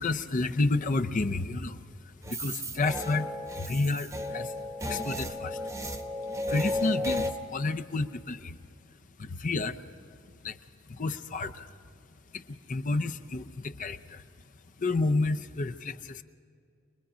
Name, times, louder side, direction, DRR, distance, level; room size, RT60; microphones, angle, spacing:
voice 1, 0.0-8.6 9.2-9.9 10.4-10.6 10.8-11.8 12.3-14.3 14.8-16.2, left 3 dB, 40° left, 8 dB, 0.6 m, -31 dB
sound 1, 2.2-7.3, left 1 dB, 15° right, 1.0 m, -34 dB
25.0 x 20.5 x 5.1 m, 2.4 s
head